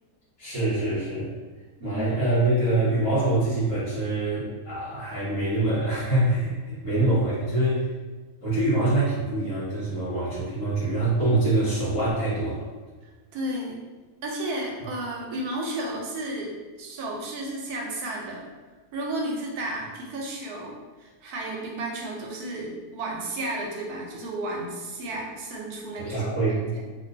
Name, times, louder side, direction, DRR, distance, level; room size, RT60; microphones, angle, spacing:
voice 1, 0.4-1.3 1.8-7.9 8.4-12.7 26.0-26.7, right 2 dB, 55° left, -10 dB, 1.7 m, -25 dB
voice 2, 13.0-13.8 14.2-18.5 18.9-26.3 26.7-26.8, right 1 dB, 75° right, -1 dB, 1.1 m, -33 dB
3.0 x 2.7 x 2.6 m, 1.3 s
omnidirectional pair, 1.7 m